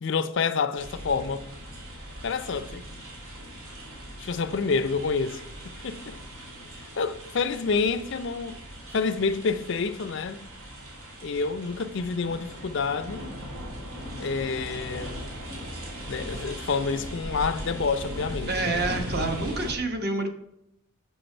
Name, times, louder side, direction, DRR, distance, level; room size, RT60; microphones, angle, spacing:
voice 1, 0.0-1.4 2.2-2.8 4.2-5.4 5.8-6.1 7.0-8.6 8.9-10.4 11.2-13.3 14.2-15.2 16.1-18.8, left 5 dB, 55° left, 0.4 m, -28 dB
sound 1, 0.8-19.7, equal, 80° right, 2.5 m, -39 dB
voice 2, 18.5-20.3, right 3 dB, 45° right, 1.0 m, -28 dB
7.8 x 6.7 x 4.4 m
head